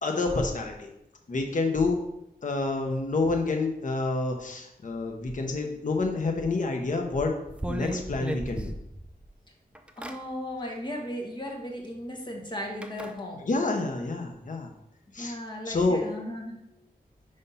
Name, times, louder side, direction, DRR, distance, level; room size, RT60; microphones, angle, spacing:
voice 1, 0.0-0.9 1.3-2.0 2.4-7.3 7.7-8.7 13.4-14.7 15.1-15.4 15.6-16.1, left 3 dB, 55° left, 2 dB, 0.9 m, -28 dB
sound 1, 7.5-9.3 9.7-10.2 11.5-11.6 12.8-13.1, right 1 dB, 5° right, 0.4 m, -34 dB
voice 2, 10.0-13.4 15.2-16.6, equal, 30° left, 0 dB, 1.2 m, -36 dB
5.5 x 3.5 x 5.5 m, 0.81 s
wide cardioid pair, 125°, 16 cm